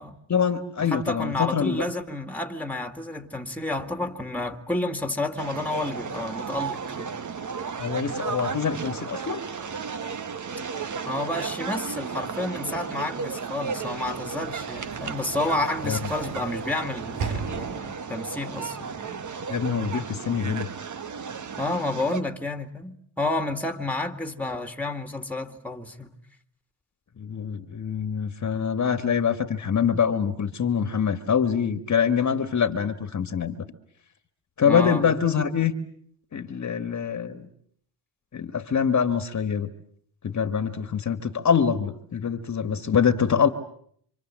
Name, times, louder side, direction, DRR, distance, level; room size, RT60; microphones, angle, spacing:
voice 1, 0.3-1.8 7.8-9.4 15.8-16.0 19.5-20.7 27.2-33.6 34.6-35.7 36.3-37.5 38.3-39.7 40.2-43.5, left 7 dB, 40° left, 1.9 m, -24 dB
voice 2, 0.8-7.1 11.1-19.2 21.6-26.1 34.6-35.1, left 2 dB, 5° left, 2.4 m, -30 dB
sound 1, 5.4-22.2, right 6 dB, 40° right, 1.6 m, -34 dB
Sliding door / Slam, 13.6-18.2, right 5 dB, 80° right, 3.0 m, -38 dB
27.0 x 25.5 x 7.6 m
supercardioid pair, 80°, 44 cm